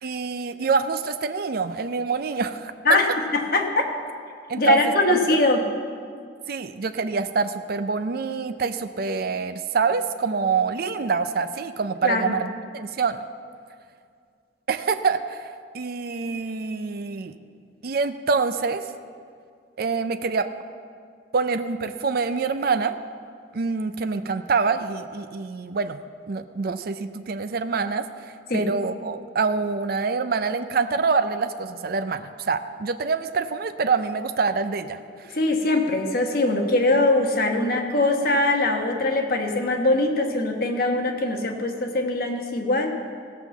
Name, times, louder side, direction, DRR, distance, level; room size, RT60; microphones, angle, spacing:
voice 1, 0.0-2.7 4.5-4.8 5.1-5.4 6.5-13.2 14.7-15.5 15.7-17.3 17.8-18.9 19.8-20.5 21.3-23.0 23.5-26.0 26.3-28.1 28.5-35.0, right 5 dB, 55° right, 10 dB, 0.5 m, -25 dB
voice 2, 3.3-3.9 4.6-5.6 12.0-12.4 28.5-28.7 35.3-42.9, left 2 dB, 55° left, 3 dB, 1.2 m, -22 dB
16.0 x 5.8 x 7.1 m, 2.2 s
head